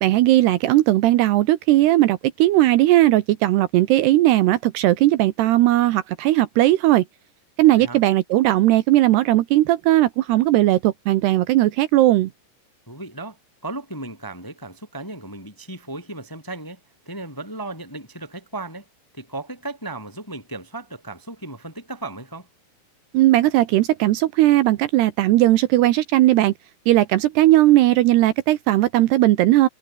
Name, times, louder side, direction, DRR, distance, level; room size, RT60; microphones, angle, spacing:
voice 1, 0.0-7.0 7.6-12.3 23.1-26.5 26.9-29.7, right 15 dB, 75° right, 2.7 m, -17 dB
voice 2, 12.9-16.8 17.1-18.8 19.1-22.5, right 2 dB, 5° left, 1.8 m, -35 dB
omnidirectional pair, 5.3 m